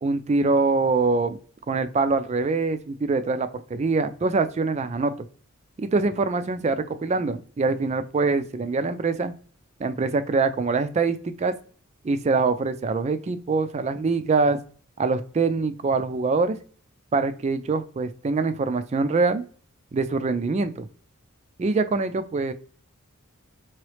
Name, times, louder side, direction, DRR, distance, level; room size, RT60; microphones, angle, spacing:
voice 1, 0.0-1.4 1.7-5.1 5.8-9.3 9.8-11.5 12.0-14.6 15.0-16.6 17.1-19.4 19.9-20.9 21.6-22.5, right 3 dB, 30° right, 10 dB, 0.3 m, -24 dB
4.6 x 3.0 x 3.2 m, 0.44 s
head